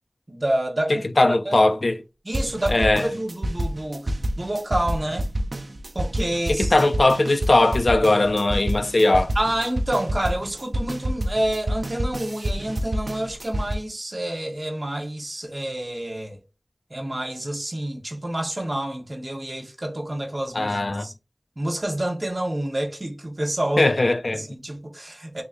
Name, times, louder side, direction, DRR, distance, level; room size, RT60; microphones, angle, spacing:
voice 1, 0.3-1.6 2.2-5.3 5.9-6.7 9.3-16.4 16.9-21.1 21.6-23.9 24.3-25.4, right 1 dB, 45° right, 1.2 m, -28 dB
voice 2, 0.9-2.0 2.7-3.1 6.5-9.3 20.5-21.1 23.8-24.4, left 2 dB, 75° left, 0.3 m, -19 dB
sound 1, 2.3-13.7, right 1 dB, 75° right, 0.4 m, -28 dB
3.4 x 3.2 x 2.5 m
wide cardioid pair, 45°, 0 cm